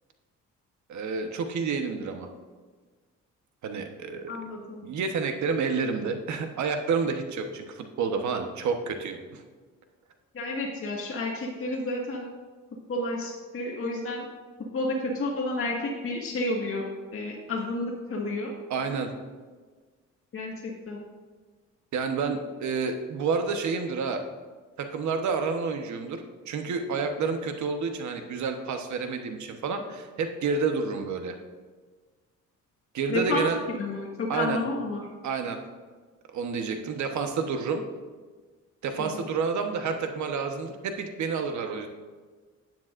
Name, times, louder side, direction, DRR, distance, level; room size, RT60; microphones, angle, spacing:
voice 1, 0.9-2.3 3.6-4.3 4.8-9.4 18.7-19.1 21.9-24.2 24.8-31.4 32.9-33.6 34.3-34.6 35.2-35.6 36.3-37.8 38.8-41.9, right 5 dB, 70° right, 6 dB, 1.2 m, -29 dB
voice 2, 4.3-4.9 10.3-12.3 12.9-14.3 14.7-16.9 17.1-18.5 20.3-21.0 33.1-35.1 39.0-39.2, left 2 dB, 45° left, -3 dB, 1.8 m, -31 dB
12.0 x 9.3 x 2.6 m, 1.4 s
cardioid pair, 90°, 30 cm